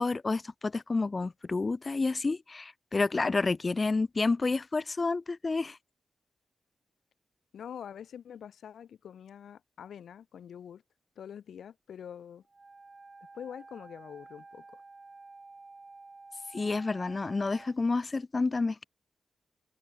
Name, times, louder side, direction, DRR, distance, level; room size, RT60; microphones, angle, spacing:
voice 1, 0.0-5.8 16.5-18.8, left 3 dB, 30° left, 1.3 m, -29 dB
voice 2, 7.5-10.8 11.2-12.4 13.3-14.8, left 8 dB, 85° left, 3.7 m, -45 dB
Wind instrument woodwind instrument, 12.5-17.8, right 3 dB, 30° right, 1.5 m, -51 dB
open air
wide cardioid pair, 100°, 0 cm